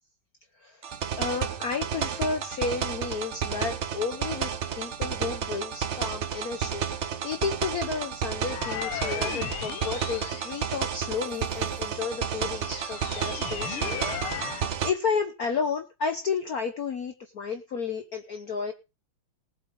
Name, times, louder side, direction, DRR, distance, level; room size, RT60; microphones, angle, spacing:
voice 1, 0.5-0.9 1.2-18.7, left 5 dB, 55° left, 6 dB, 1.2 m, -32 dB
sound 1, 0.8-14.9, right 8 dB, 70° right, 0.6 m, -31 dB
sound 2, 8.4-11.3 11.9-14.7, left 9 dB, 80° left, 1.9 m, -37 dB
19.5 x 7.7 x 3.7 m, 0.29 s
omnidirectional pair, 2.4 m